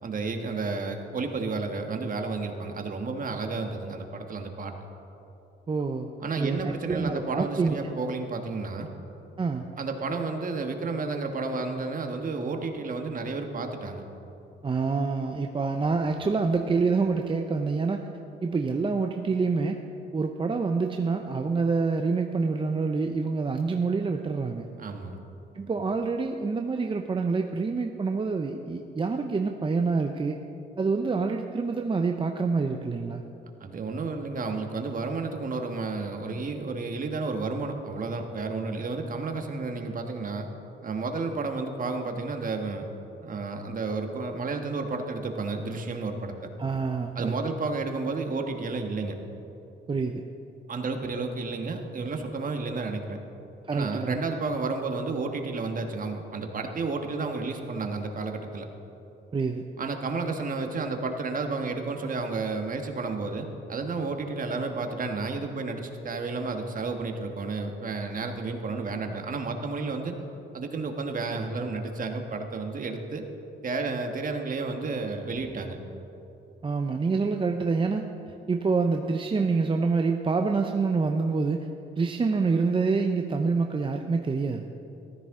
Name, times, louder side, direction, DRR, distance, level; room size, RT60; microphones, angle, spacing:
voice 1, 0.0-4.7 6.2-8.9 9.8-14.0 24.8-25.2 33.6-40.5 40.8-42.9 43.2-46.3 47.1-49.1 50.7-53.2 53.7-58.7 59.8-70.1 70.5-73.2 73.6-75.8, right 3 dB, 45° right, 4 dB, 1.4 m, -31 dB
voice 2, 5.7-6.1 6.4-7.8 9.4-9.7 14.6-18.1 18.4-19.8 20.1-24.7 25.5-30.4 30.8-33.2 46.6-47.4 49.9-50.2 53.7-54.2 59.3-59.6 76.6-78.0 78.5-81.7 82.0-84.7, right 4 dB, 25° right, 4 dB, 0.6 m, -26 dB
15.0 x 13.5 x 3.7 m, 2.9 s
cardioid pair, 90°, 20 cm